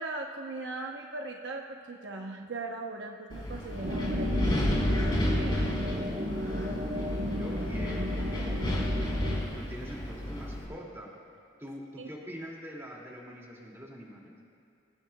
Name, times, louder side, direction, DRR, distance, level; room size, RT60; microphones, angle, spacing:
voice 1, 0.0-4.5 5.0-5.7 12.0-12.1, right 2 dB, 65° right, 1 dB, 0.9 m, -39 dB
Wind, 3.3-10.6, left 1 dB, 25° left, 3.8 m, -31 dB
sound 1, 3.8-9.4, left 1 dB, 40° right, 1.2 m, -34 dB
Bass guitar, 4.4-8.4, left 1 dB, 80° left, 2.1 m, -44 dB
voice 2, 6.8-9.1 9.5-11.1 11.6-14.3, equal, 15° right, -3 dB, 2.4 m, -44 dB
26.5 x 16.5 x 2.3 m, 2.6 s
head